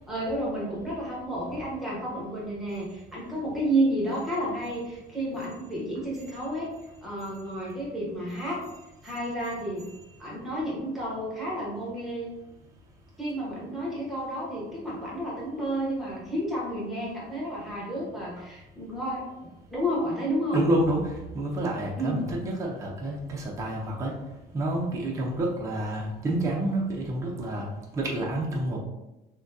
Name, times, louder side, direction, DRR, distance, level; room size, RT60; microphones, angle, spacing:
voice 1, 0.1-6.7 7.0-8.6 9.0-9.8 10.2-12.3 13.2-20.6 22.0-22.3, right 1 dB, ahead, -6 dB, 1.1 m, -31 dB
voice 2, 20.5-24.1 24.5-27.7 27.9-28.8, right 1 dB, 15° right, -3 dB, 0.6 m, -28 dB
6.0 x 2.2 x 2.6 m, 0.96 s
cardioid pair, 175°, 18 cm